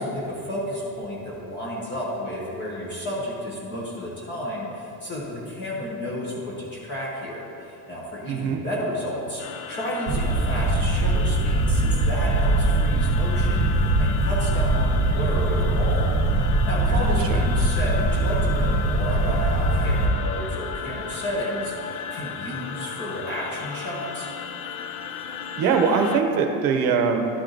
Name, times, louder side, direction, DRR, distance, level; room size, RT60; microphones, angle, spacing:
voice 1, 0.0-9.4 9.7-16.1 16.5-24.3, equal, 25° left, -6 dB, 1.1 m, -31 dB
voice 2, 8.3-8.6 16.9-17.4 25.6-27.2, right 5 dB, 55° right, 4 dB, 0.8 m, -22 dB
sound 1, 9.4-26.2, left 7 dB, 75° left, 0.6 m, -35 dB
sound 2, 10.1-20.1, right 2 dB, 35° right, 1.3 m, -22 dB
11.5 x 4.6 x 3.9 m, 2.9 s
cardioid pair, 180°, 41 cm